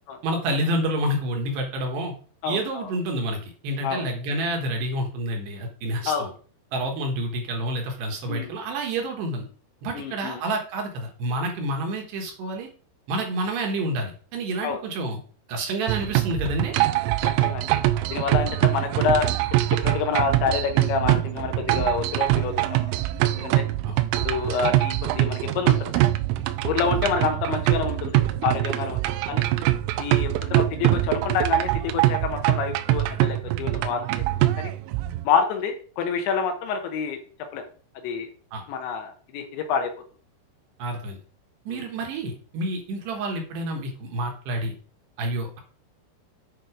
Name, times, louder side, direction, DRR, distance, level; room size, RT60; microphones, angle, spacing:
voice 1, 0.2-2.1 2.5-6.3 6.7-9.5 9.8-12.7 13.1-15.2 15.5-16.8 23.8-24.0 26.9-27.1 38.5-38.6 40.8-41.2 41.7-44.7 45.2-45.6, right 1 dB, 65° right, 2 dB, 3.2 m, -28 dB
voice 2, 2.4-2.9 3.8-4.1 6.1-6.3 8.3-8.5 9.9-10.4 14.6-14.8 17.2-17.8 18.1-19.3 19.8-22.9 23.3-23.6 24.2-25.9 26.6-29.0 29.3-29.4 30.0-34.2 34.6-34.7 35.2-37.2 37.5-37.6 38.0-38.3 38.7-39.9 41.7-41.8, left 6 dB, 75° left, 5 dB, 3.2 m, -27 dB
sound 1, 15.9-35.3, right 15 dB, 90° right, 3.2 m, -23 dB
9.1 x 5.3 x 4.9 m, 0.41 s
omnidirectional pair, 5.7 m